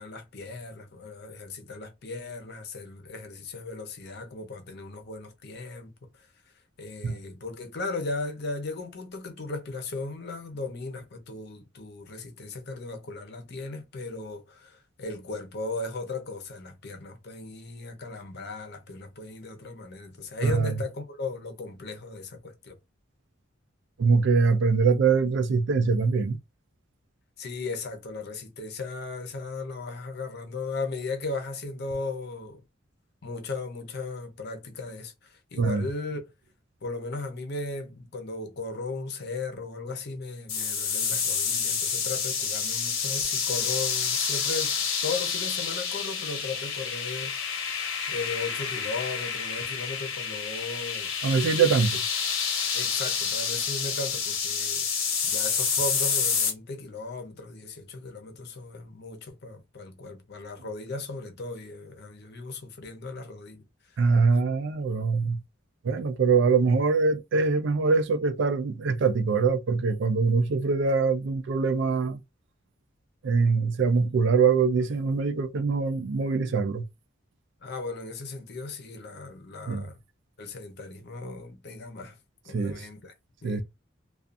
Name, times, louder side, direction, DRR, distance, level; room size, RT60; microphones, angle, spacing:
voice 1, 0.0-6.3 6.8-22.8 27.4-32.6 33.2-36.2 36.8-47.7 48.1-51.1 52.7-54.9 55.2-64.0 77.6-80.0 80.4-82.2 82.4-83.1 83.4-83.6, left 3 dB, 55° left, 0.7 m, -37 dB
voice 2, 20.4-20.7 24.0-26.4 35.6-35.9 51.2-52.0 64.0-65.4 65.8-72.2 73.2-76.9 79.7-79.8 82.5-82.9 83.4-83.6, right 4 dB, 60° right, 0.4 m, -23 dB
sound 1, 40.5-56.5, left 6 dB, 85° left, 0.9 m, -29 dB
2.4 x 2.3 x 2.5 m
head